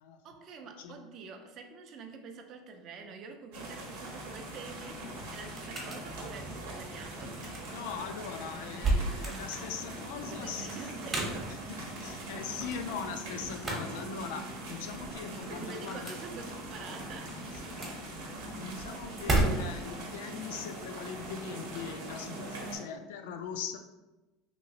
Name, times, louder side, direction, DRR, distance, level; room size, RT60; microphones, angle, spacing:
voice 1, 0.2-7.4 10.2-11.6 15.5-17.5, right 5 dB, 45° right, 5 dB, 0.4 m, -46 dB
sound 1, 3.5-22.8, right 1 dB, 85° right, 0.8 m, -42 dB
sound 2, 4.6-20.0, right 2 dB, 25° right, 0.8 m, -36 dB
Mechanical fan, 6.4-14.8, right 4 dB, 20° left, 0.5 m, -56 dB
voice 2, 7.7-16.1 17.5-23.8, left 6 dB, 80° left, 6 dB, 0.3 m, -41 dB
2.9 x 2.8 x 2.7 m, 1.1 s
supercardioid pair, 125°, 0 cm